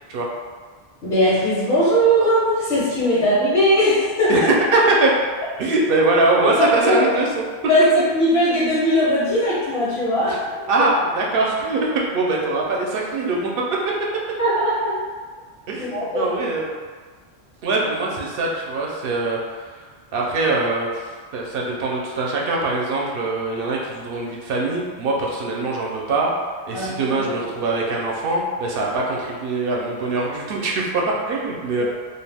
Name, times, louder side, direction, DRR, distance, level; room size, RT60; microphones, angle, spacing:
voice 1, 1.0-4.5 6.6-7.1 7.7-10.4 14.4-15.0 15.8-16.4 26.7-27.5 31.8-31.9, equal, 75° left, -9 dB, 1.1 m, -19 dB
voice 2, 4.3-5.1 5.6-7.5 10.2-10.4 10.7-13.5 15.7-16.7 17.6-19.7 20.1-26.3 26.7-31.8, right 2 dB, 65° right, -2 dB, 0.7 m, -22 dB
2.5 x 2.2 x 3.3 m, 1.5 s
omnidirectional pair, 1.1 m